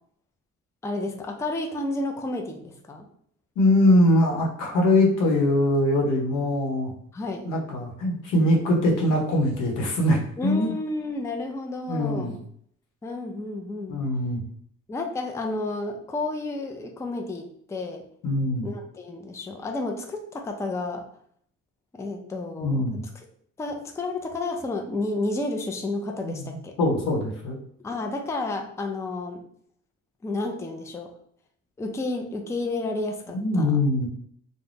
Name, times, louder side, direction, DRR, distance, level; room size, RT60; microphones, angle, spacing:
voice 1, 0.8-3.1 7.1-7.5 10.4-12.4 13.0-14.0 14.9-18.0 18.6-21.1 21.9-22.9 23.6-26.7 27.8-29.4 30.2-31.1 31.8-33.8, left 2 dB, 10° left, 4 dB, 0.4 m, -31 dB
voice 2, 3.6-6.9 7.4-10.7 11.9-12.4 13.9-14.4 18.2-18.7 22.6-23.0 26.2-27.6 33.3-34.1, left 1 dB, 85° left, 0 dB, 0.9 m, -22 dB
2.5 x 2.1 x 3.3 m, 0.64 s
cardioid pair, 90°, 30 cm